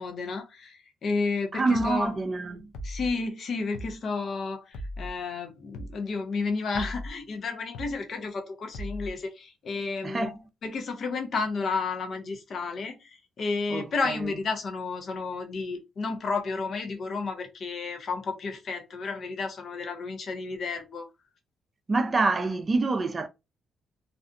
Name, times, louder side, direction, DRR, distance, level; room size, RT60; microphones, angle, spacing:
voice 1, 0.0-2.1 2.8-10.3 10.6-21.1, left 4 dB, 55° left, 0.7 m, -32 dB
voice 2, 1.5-2.7 10.0-10.4 13.7-14.3 21.9-23.3, right 3 dB, 30° right, 0.5 m, -26 dB
sound 1, 1.7-2.0 2.7-3.1 3.7-4.0 4.7-5.1 5.7-6.0 6.7-7.1 7.7-8.0 8.7-9.1, equal, 90° left, 0.4 m, -37 dB
2.5 x 2.2 x 2.5 m
cardioid pair, 90°, 0 cm